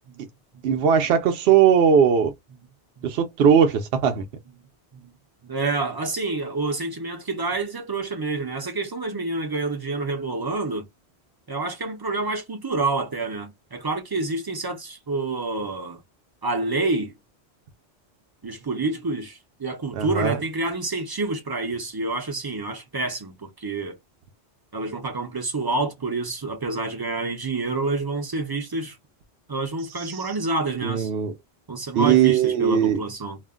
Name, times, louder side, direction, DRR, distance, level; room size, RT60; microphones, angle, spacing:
voice 1, 0.6-2.3 3.0-4.2 19.9-20.4 30.0-30.3 30.8-31.3 32.0-33.0, right 7 dB, 75° right, 0.8 m, -19 dB
voice 2, 5.4-10.9 11.5-16.0 16.4-17.1 18.4-24.0 24.7-29.0 29.5-31.1 31.7-33.4, right 3 dB, 30° right, 0.4 m, -28 dB
2.4 x 2.1 x 3.5 m
omnidirectional pair, 1.1 m